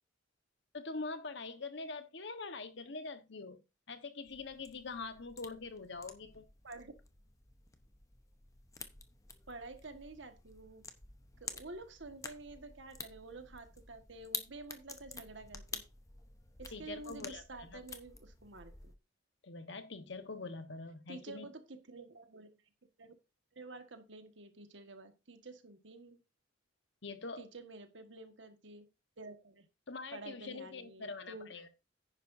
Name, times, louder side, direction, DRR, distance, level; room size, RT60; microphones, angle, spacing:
voice 1, 0.7-6.4 16.7-17.8 19.4-21.5 27.0-27.4 29.9-31.7, left 3 dB, 65° left, 1.2 m, -44 dB
sound 1, 4.2-19.0, left 4 dB, 15° left, 0.8 m, -50 dB
voice 2, 9.5-10.8 11.4-15.8 16.6-18.9 21.1-22.5 23.0-23.1 23.5-26.2 27.4-28.8 29.2-29.7 30.1-31.5, right 3 dB, 65° right, 1.6 m, -50 dB
10.0 x 9.9 x 2.7 m
head